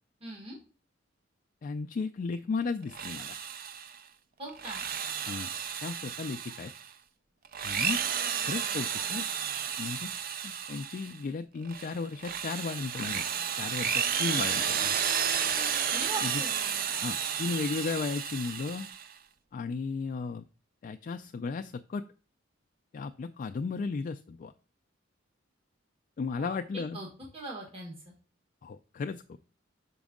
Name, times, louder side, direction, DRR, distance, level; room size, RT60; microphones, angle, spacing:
voice 1, 0.2-0.6 4.4-4.9 15.9-16.5 26.4-26.5 26.9-27.1 27.3-28.1, right 2 dB, 30° right, -2 dB, 1.4 m, -40 dB
voice 2, 1.6-3.4 5.2-5.5 5.8-6.7 7.6-8.0 8.4-9.3 9.8-10.1 10.4-13.3 13.5-15.0 16.2-16.4 17.0-18.9 19.5-20.4 20.8-22.0 22.9-24.5 26.2-27.0 28.6-29.4, left 4 dB, 45° left, 8 dB, 0.3 m, -35 dB
Drill, 2.8-4.0 4.5-6.9 7.5-11.2 11.7-19.1, right 8 dB, 50° right, 0.5 m, -32 dB
6.1 x 5.2 x 3.6 m, 0.37 s
head